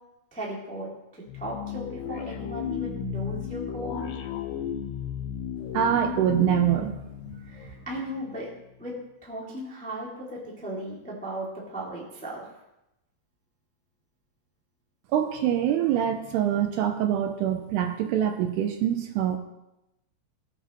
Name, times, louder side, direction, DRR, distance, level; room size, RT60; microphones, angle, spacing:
voice 1, 0.3-4.1 7.4-8.5 8.8-8.9 9.2-12.5, right 1 dB, 5° left, -5 dB, 0.8 m, -36 dB
sound 1, 1.3-8.5, left 9 dB, 75° left, 2.8 m, -34 dB
voice 2, 5.7-7.0 15.1-19.4, right 10 dB, 85° right, 6 dB, 2.5 m, -24 dB
19.0 x 8.3 x 3.1 m, 0.92 s
omnidirectional pair, 5.1 m